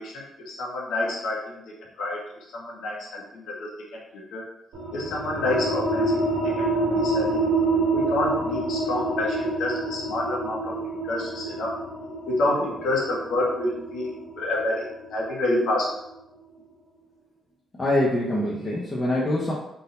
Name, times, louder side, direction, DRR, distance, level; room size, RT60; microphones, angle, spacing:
voice 1, 0.0-1.6 2.0-2.2 2.5-3.7 4.3-4.4 4.9-6.2 6.4-7.4 7.9-10.7 11.0-11.7 12.3-14.1 14.4-14.9 15.1-15.9, left 2 dB, 80° left, -3 dB, 1.3 m, -28 dB
sound 1, 4.7-15.9, right 2 dB, 90° right, 1.2 m, -27 dB
voice 2, 17.8-19.5, left 1 dB, 25° left, -6 dB, 0.8 m, -24 dB
3.8 x 2.8 x 4.0 m, 0.83 s
cardioid pair, 110°, 0 cm